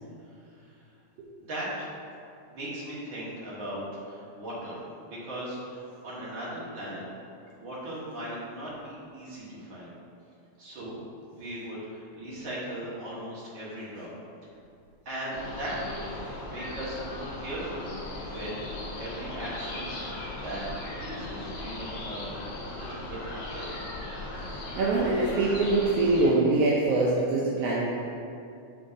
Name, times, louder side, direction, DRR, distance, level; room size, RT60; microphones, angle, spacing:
voice 1, 1.5-1.9 2.5-7.0 7.6-9.9 10.6-11.0 11.3-14.1 15.1-17.9 18.2-18.5 19.0-20.0 20.4-20.6 20.9-22.3 22.8-23.8, right 1 dB, 45° right, -8 dB, 1.9 m, -38 dB
sound 1, 15.3-26.3, left 2 dB, 60° left, 2.6 m, -38 dB
voice 2, 24.4-27.9, right 2 dB, 75° right, -5 dB, 1.4 m, -24 dB
9.6 x 3.8 x 2.6 m, 2.5 s
omnidirectional pair, 3.3 m